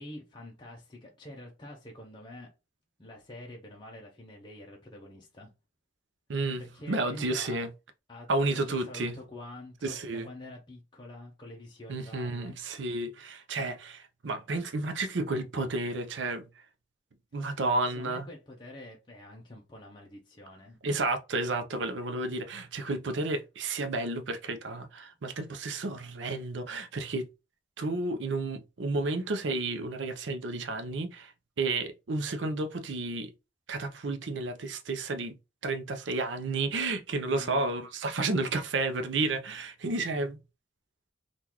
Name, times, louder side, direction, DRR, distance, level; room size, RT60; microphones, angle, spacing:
voice 1, 0.0-2.5 3.0-5.5 6.6-7.6 8.1-12.6 17.3-20.8 37.3-37.9, left 1 dB, 25° left, 0.6 m, -47 dB
voice 2, 6.3-7.7 8.3-9.1 9.8-10.3 11.9-16.4 17.3-18.3 20.8-27.3 27.8-33.3 33.7-35.3 35.6-40.4, right 2 dB, 80° right, 0.6 m, -31 dB
3.7 x 2.4 x 2.9 m
head